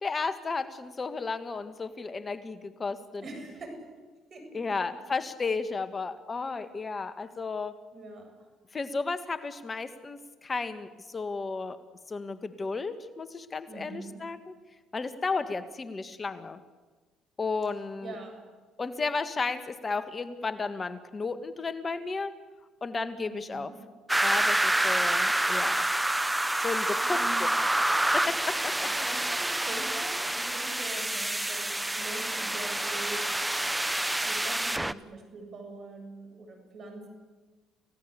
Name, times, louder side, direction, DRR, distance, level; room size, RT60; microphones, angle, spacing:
voice 1, 0.0-3.2 4.5-7.8 8.7-11.8 12.1-14.4 14.9-16.6 17.4-18.1 18.8-22.4 22.8-23.7 24.2-25.9 26.6-27.5 28.1-28.9, left 4 dB, 35° left, 11 dB, 1.6 m, -33 dB
voice 2, 3.2-3.9 4.3-4.9 7.9-8.5 13.7-14.2 18.0-18.4 23.2-23.8 27.0-27.6 28.8-33.4 34.2-37.1, right 2 dB, 50° right, 5 dB, 7.7 m, -43 dB
sound 1, 24.1-34.9, right 1 dB, 10° right, 1.0 m, -28 dB
29.5 x 17.0 x 8.3 m, 1.4 s
supercardioid pair, 65°, 0 cm